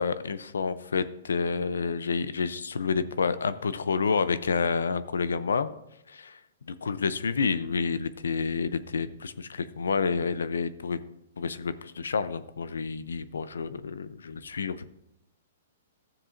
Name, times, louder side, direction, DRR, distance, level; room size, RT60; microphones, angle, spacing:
voice 1, 0.0-5.7 6.1-6.4 6.7-11.0 11.4-14.9, left 5 dB, 90° left, 14 dB, 0.5 m, -29 dB
14.0 x 7.3 x 2.6 m, 0.85 s
hypercardioid pair, 135°, 0 cm